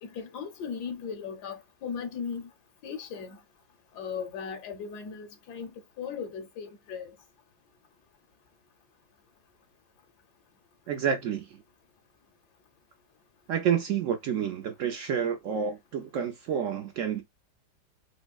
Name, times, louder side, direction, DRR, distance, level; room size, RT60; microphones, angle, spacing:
voice 1, 0.0-2.5 2.8-3.4 3.9-5.7 6.0-7.1, left 6 dB, 75° left, 1.1 m, -37 dB
voice 2, 10.9-11.6 13.5-17.2, right 8 dB, 85° right, 0.6 m, -29 dB
5.2 x 2.1 x 2.3 m
omnidirectional pair, 2.0 m